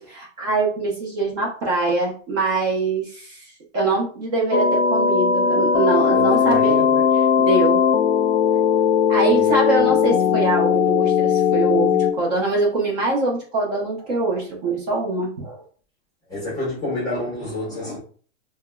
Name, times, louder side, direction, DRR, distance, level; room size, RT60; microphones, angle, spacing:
voice 1, 0.0-6.8 7.4-7.8 9.1-15.6, right 3 dB, 30° right, -2 dB, 0.7 m, -23 dB
sound 1, 4.5-12.1, left 7 dB, 65° left, 0.5 m, -18 dB
voice 2, 6.1-7.1 9.2-10.0 10.7-11.0 11.2-11.3 11.6-11.7 16.3-18.0, left 1 dB, 10° left, -6 dB, 0.7 m, -30 dB
3.3 x 2.1 x 2.2 m, 0.43 s
supercardioid pair, 160°, 38 cm